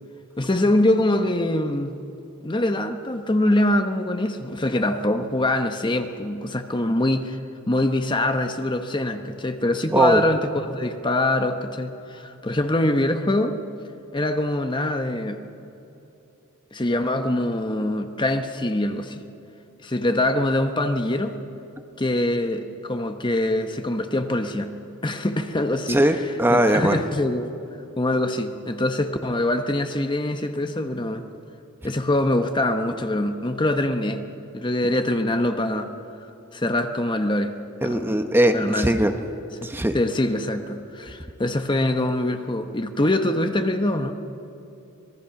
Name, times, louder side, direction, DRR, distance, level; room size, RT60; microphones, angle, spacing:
voice 1, 0.4-2.0 2.4-7.4 7.7-13.5 14.1-15.4 16.7-19.2 19.8-21.4 22.0-24.7 25.0-26.0 26.5-27.5 28.0-31.2 31.8-34.2 34.5-35.9 36.5-37.5 37.8-38.2 38.5-38.9 39.6-39.7 39.9-44.1, left 1 dB, 20° left, 7 dB, 0.9 m, -24 dB
voice 2, 9.9-10.2 25.9-27.0 37.8-39.1 39.6-40.0, right 1 dB, 10° right, 6 dB, 1.0 m, -20 dB
25.5 x 20.0 x 5.9 m, 2.9 s
head